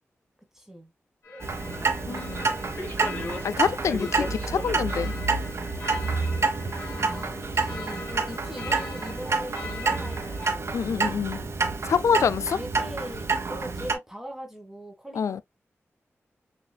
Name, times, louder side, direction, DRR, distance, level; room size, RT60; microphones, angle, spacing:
voice 1, 0.5-0.9 1.6-2.5 4.1-4.5 7.0-10.8 12.1-12.2 12.5-15.4, equal, 10° right, 1.5 m, -41 dB
sound 1, 1.2-10.5, left 2 dB, 45° left, 2.0 m, -39 dB
Clock, 1.4-13.9, right 4 dB, 60° right, 1.0 m, -28 dB
voice 2, 2.1-2.5 3.4-5.1 10.7-11.4 11.9-12.6 15.1-15.4, left 7 dB, 80° left, 0.3 m, -26 dB
6.4 x 2.4 x 2.2 m
cardioid pair, 50°, 5 cm